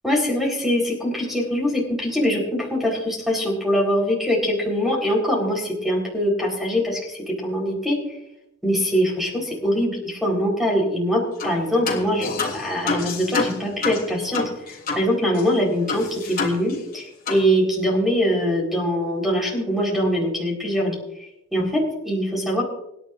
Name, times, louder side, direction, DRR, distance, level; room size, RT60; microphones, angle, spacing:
voice 1, 0.0-8.0 8.6-14.4 14.9-21.0 21.5-22.6, equal, ahead, -2 dB, 4.3 m, -23 dB
sound 1, 11.4-11.6 11.9-15.1 15.3-15.4 15.9-17.0 17.3-17.5, left 4 dB, 50° left, 3.1 m, -28 dB
26.0 x 11.0 x 2.6 m, 0.81 s
head